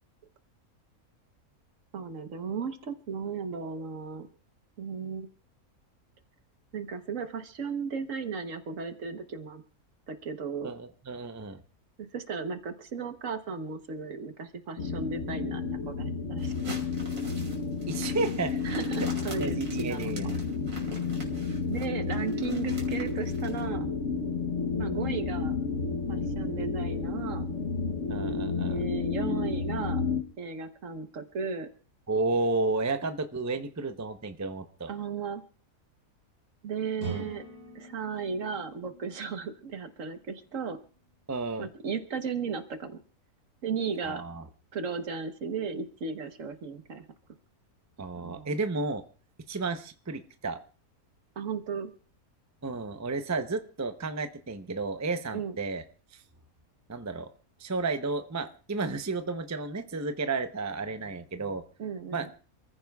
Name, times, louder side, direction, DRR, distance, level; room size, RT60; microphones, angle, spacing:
voice 1, 1.9-4.3 4.8-5.3 6.7-9.6 10.1-10.7 12.0-16.5 18.6-20.4 21.7-23.8 24.8-25.6 26.1-27.5 28.6-30.0 30.4-31.7 34.9-35.4 36.6-37.4 37.7-40.8 41.6-43.0 43.6-44.2 44.7-47.0 48.2-48.5 51.4-51.9 55.3-55.5 61.8-62.3, right 5 dB, 60° right, 8 dB, 1.4 m, -35 dB
voice 2, 10.6-11.6 17.9-18.6 19.3-20.3 28.1-28.8 32.1-34.9 37.0-37.2 41.3-41.7 44.0-44.4 48.0-49.0 49.5-50.6 52.6-55.8 56.1-56.2 56.9-57.3 57.6-61.6 62.1-62.4, right 3 dB, 20° right, 8 dB, 0.4 m, -32 dB
sound 1, 14.8-30.2, left 4 dB, 55° left, 1.2 m, -31 dB
sound 2, 16.4-23.6, right 2 dB, 80° right, 3.2 m, -46 dB
sound 3, 37.0-40.8, right 4 dB, 85° left, 8.4 m, -44 dB
27.5 x 14.5 x 2.3 m, 0.40 s
omnidirectional pair, 1.6 m